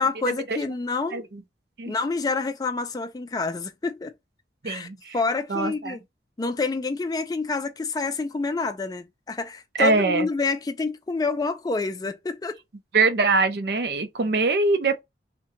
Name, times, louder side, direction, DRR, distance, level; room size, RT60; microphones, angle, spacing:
voice 1, 0.0-1.3 1.9-4.1 4.6-4.9 5.1-6.0 6.4-12.6, left 4 dB, 20° left, 0.3 m, -28 dB
voice 2, 4.6-5.2 5.5-6.0 9.8-10.3 12.9-15.0, right 3 dB, 65° right, 0.5 m, -23 dB
2.7 x 2.2 x 3.7 m
head